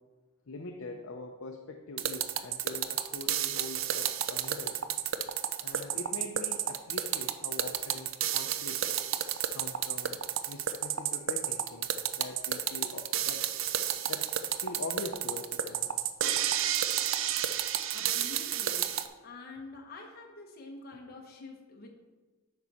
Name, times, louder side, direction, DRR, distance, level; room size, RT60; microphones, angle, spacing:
voice 1, 0.5-4.8 5.6-9.0 9.5-13.5 14.1-16.1, left 3 dB, 65° left, 3 dB, 0.6 m, -43 dB
sound 1, 2.0-19.1, right 10 dB, 65° right, 0.5 m, -31 dB
voice 2, 17.9-18.9 19.2-21.9, left 2 dB, 45° left, 0 dB, 1.0 m, -47 dB
9.2 x 6.2 x 4.1 m, 1.3 s
head